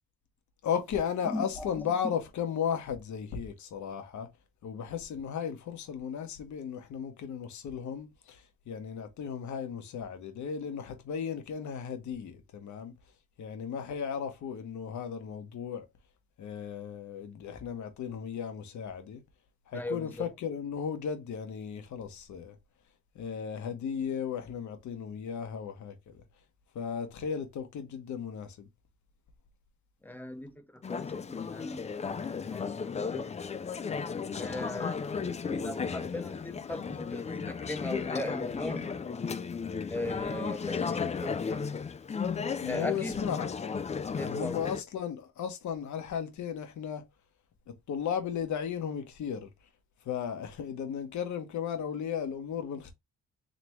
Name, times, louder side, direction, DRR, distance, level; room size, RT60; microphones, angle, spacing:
voice 1, 0.6-4.3 4.6-12.9 13.4-15.9 16.4-19.2 19.7-22.6 23.1-26.2 26.7-28.7 42.6-43.5 44.2-47.0 47.7-49.5 50.0-52.9, left 7 dB, 70° left, 1.3 m, -35 dB
voice 2, 1.2-1.9 19.7-20.3 30.0-33.3 34.4-35.0 35.4-39.1 39.9-41.7 42.6-43.3 44.2-44.6, left 1 dB, 5° left, 0.9 m, -39 dB
Conversation / Chatter, 30.8-44.8, left 5 dB, 25° left, 0.4 m, -35 dB
3.9 x 3.3 x 3.1 m
cardioid pair, 90°, 30 cm